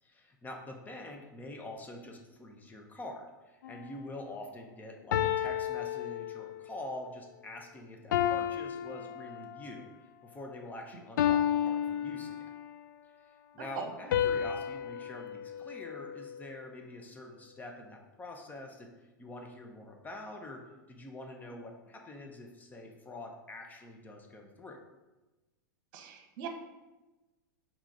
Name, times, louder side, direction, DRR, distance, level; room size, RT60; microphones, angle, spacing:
voice 1, 0.0-12.4 13.2-20.6 20.9-24.8, left 2 dB, 15° left, 2 dB, 1.0 m, -45 dB
sound 1, 3.6-4.0 5.1-6.7 8.1-9.8 11.2-12.8 14.1-16.5, left 10 dB, 65° left, 0.4 m, -32 dB
voice 2, 13.6-13.9 25.9-26.5, right 7 dB, 50° right, 5 dB, 1.2 m, -41 dB
5.0 x 4.4 x 5.2 m, 1.1 s
figure-of-eight pair, 95°, 11 cm